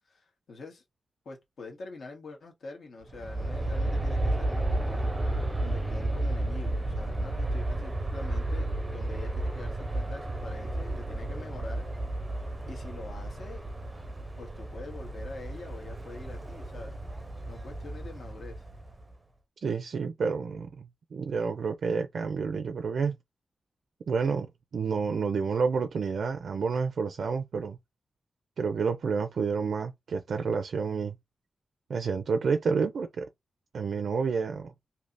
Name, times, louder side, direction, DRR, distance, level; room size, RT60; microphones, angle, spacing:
voice 1, 0.1-0.8 1.2-11.8 12.7-13.6 14.4-17.0 17.5-18.6, left 3 dB, 65° left, 1.4 m, -45 dB
Aircraft, 3.0-19.1, right 1 dB, 15° right, 0.6 m, -32 dB
voice 2, 19.6-23.2 24.1-27.8 28.6-31.1 31.9-33.3 33.7-34.7, right 5 dB, 75° right, 0.4 m, -29 dB
3.3 x 2.8 x 2.6 m
wide cardioid pair, 180°, 0 cm